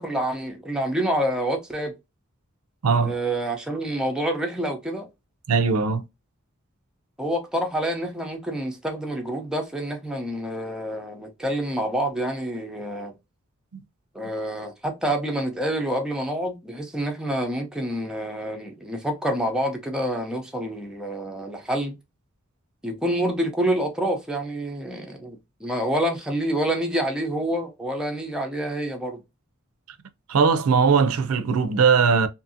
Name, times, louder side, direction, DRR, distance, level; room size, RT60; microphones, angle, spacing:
voice 1, 0.0-1.9 3.0-5.1 7.2-13.1 14.1-21.9 22.8-29.2, right 1 dB, 5° right, 0.5 m, -27 dB
voice 2, 2.8-3.1 5.5-6.0 30.3-32.3, right 5 dB, 80° right, 0.4 m, -19 dB
2.7 x 2.6 x 2.6 m
head